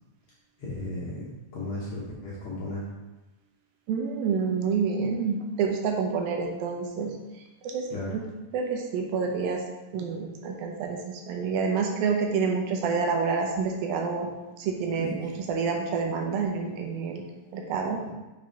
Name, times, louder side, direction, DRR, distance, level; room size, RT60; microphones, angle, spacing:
voice 1, 0.6-2.8 7.9-8.1 15.0-15.3, left 1 dB, 60° left, -6 dB, 1.8 m, -35 dB
voice 2, 3.9-7.1 7.6-7.9 8.5-9.6 9.9-11.0 11.3-14.3 14.6-17.2 17.5-18.0, right 5 dB, 75° right, 2 dB, 2.6 m, -28 dB
6.1 x 5.1 x 4.6 m, 1.1 s
omnidirectional pair, 4.4 m